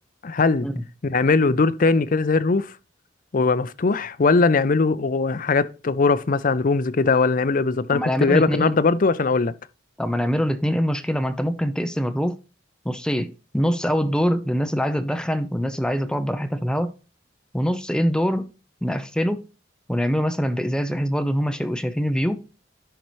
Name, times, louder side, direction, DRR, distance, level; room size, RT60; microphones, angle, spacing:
voice 1, 0.2-0.7 1.0-2.7 3.3-9.5, left 4 dB, 45° left, 0.5 m, -20 dB
voice 2, 7.9-8.7 10.0-12.4 12.8-16.9 17.5-18.5 18.8-19.5 19.9-22.4, equal, 5° left, 0.6 m, -24 dB
10.5 x 5.5 x 3.1 m
head